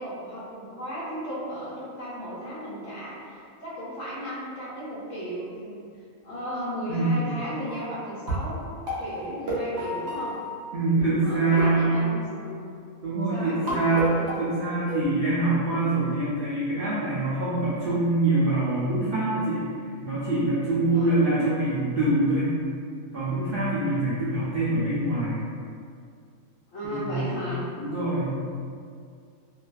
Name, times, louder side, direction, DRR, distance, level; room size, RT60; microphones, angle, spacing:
voice 1, 0.0-5.8 6.2-8.6 9.0-10.4 10.8-12.6 13.1-14.1 20.9-21.3 26.7-27.7, equal, 65° left, -8 dB, 0.9 m, -35 dB
voice 2, 6.9-7.2 10.7-12.0 13.0-19.7 20.0-22.5 23.1-25.4 26.8-27.2 27.8-28.3, right 2 dB, 80° right, -10 dB, 0.5 m, -24 dB
sound 1, 7.6-7.9 8.3-11.0 11.6-12.7 13.7-15.0, equal, 55° right, 0.9 m, -32 dB
2.6 x 2.2 x 2.3 m, 2.3 s
omnidirectional pair, 1.6 m